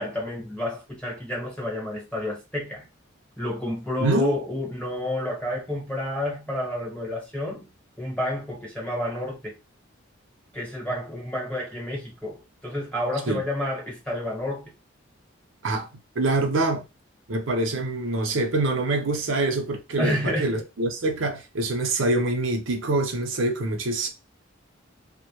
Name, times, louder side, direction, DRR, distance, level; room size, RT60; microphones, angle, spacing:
voice 1, 0.0-2.9 3.4-7.7 8.0-9.6 10.5-14.7 20.0-20.6, left 1 dB, 5° left, 1.1 m, -30 dB
voice 2, 4.0-4.3 13.3-13.4 15.6-15.9 16.2-16.8 17.3-24.1, right 2 dB, 85° right, 0.6 m, -25 dB
2.1 x 2.1 x 2.9 m
head